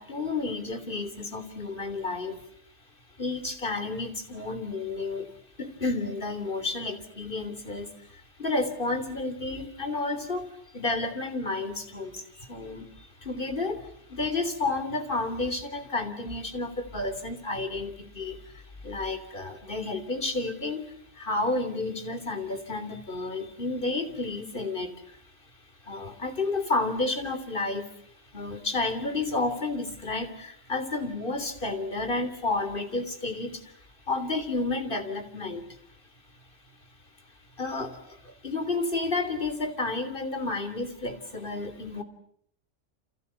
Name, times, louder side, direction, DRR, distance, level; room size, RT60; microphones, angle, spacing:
voice 1, 0.0-2.4 3.2-5.3 5.6-25.2 25.8-28.0 28.3-35.6 37.6-42.0, left 3 dB, 50° left, 8 dB, 3.6 m, -31 dB
30.0 x 27.0 x 7.1 m, 0.69 s
omnidirectional pair, 1.2 m